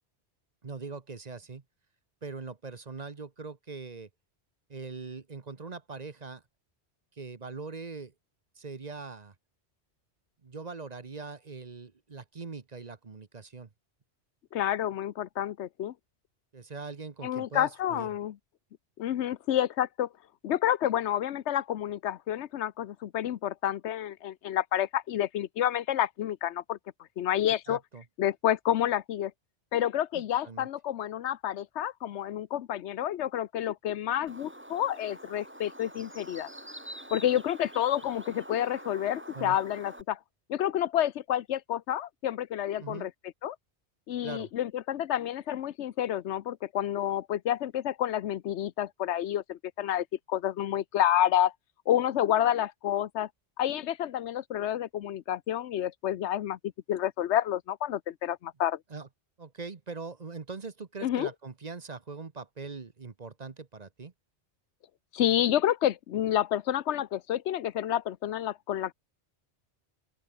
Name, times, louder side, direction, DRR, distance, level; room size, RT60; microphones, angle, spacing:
voice 1, 0.6-1.6 2.2-4.1 4.7-6.4 7.2-8.1 8.6-9.3 10.4-13.7 16.5-18.1 27.7-28.0 30.1-30.7 39.3-39.6 42.8-43.1 44.2-44.5 58.9-59.1 59.4-64.1, right 4 dB, 40° right, 1.2 m, -41 dB
voice 2, 14.5-15.9 17.2-18.4 19.0-20.1 20.4-26.8 27.2-27.8 28.2-29.3 29.7-36.5 37.1-40.2 40.5-43.1 43.4-43.6 44.1-51.5 51.9-53.3 53.6-56.6 56.9-58.8 61.0-61.3 65.1-68.9, left 11 dB, 90° left, 1.0 m, -29 dB
Bird, 34.3-40.0, right 1 dB, 10° right, 2.7 m, -46 dB
open air
omnidirectional pair, 1.1 m